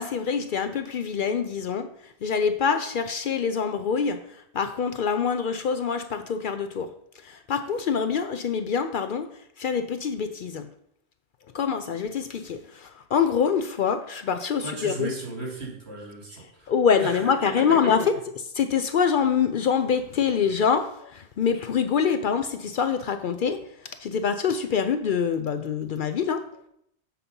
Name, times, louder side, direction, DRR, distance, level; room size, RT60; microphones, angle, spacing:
voice 1, 0.0-6.9 7.2-9.3 9.6-10.7 11.5-15.1 16.7-18.1 18.5-26.4, left 6 dB, 60° left, 8 dB, 0.6 m, -25 dB
voice 2, 14.6-16.7 17.0-17.9, right 1 dB, 75° right, -2 dB, 2.6 m, -35 dB
7.4 x 4.2 x 5.4 m, 0.73 s
omnidirectional pair, 1.1 m